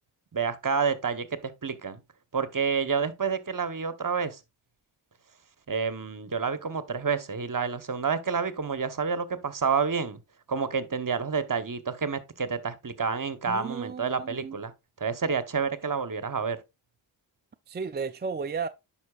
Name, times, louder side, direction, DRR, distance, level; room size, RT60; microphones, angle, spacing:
voice 1, 0.3-2.0 2.3-4.4 5.7-10.2 10.5-14.7 15.0-16.6, right 5 dB, 40° right, 1.0 m, -29 dB
voice 2, 13.5-14.6 17.7-18.7, right 5 dB, 25° right, 0.3 m, -34 dB
9.4 x 5.6 x 2.4 m
cardioid pair, 50°, 49 cm